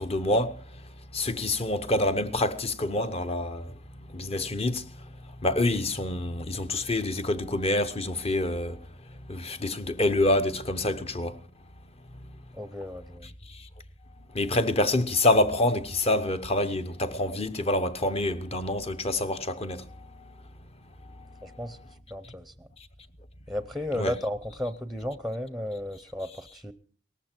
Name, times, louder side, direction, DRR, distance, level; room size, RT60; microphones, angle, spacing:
voice 1, 0.0-5.1 5.4-11.4 12.1-12.4 13.2-13.7 14.3-20.3 21.4-21.5 22.2-22.3 23.9-24.1, left 1 dB, 35° left, 0.9 m, -27 dB
voice 2, 12.6-13.3 21.4-21.8 22.1-22.7 23.5-26.7, left 1 dB, ahead, 0.7 m, -34 dB
18.0 x 14.5 x 4.5 m
head